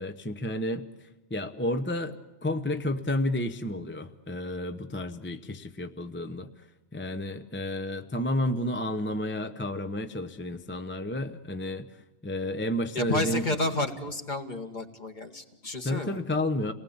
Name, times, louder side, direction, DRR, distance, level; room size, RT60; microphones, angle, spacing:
voice 1, 0.0-2.2 2.4-6.5 6.9-11.9 12.2-13.4 15.8-16.7, left 1 dB, 10° left, 7 dB, 0.7 m, -31 dB
voice 2, 12.9-16.2, left 2 dB, 40° left, 5 dB, 2.0 m, -31 dB
28.0 x 19.5 x 8.6 m, 1.2 s
omnidirectional pair, 1.2 m